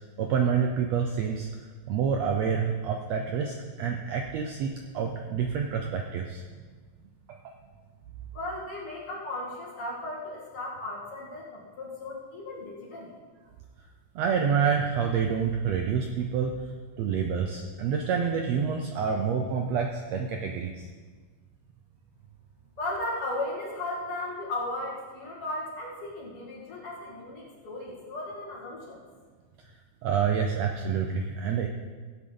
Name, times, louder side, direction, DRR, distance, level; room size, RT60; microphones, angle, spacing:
voice 1, 0.2-1.5 1.9-6.4 7.3-7.5 14.1-16.5 17.0-20.9 30.0-31.7, right 6 dB, 75° right, 3 dB, 1.6 m, -28 dB
voice 2, 8.3-13.1 22.8-29.0, left 2 dB, 45° left, -4 dB, 2.7 m, -36 dB
16.5 x 8.1 x 3.8 m, 1.5 s
omnidirectional pair, 3.7 m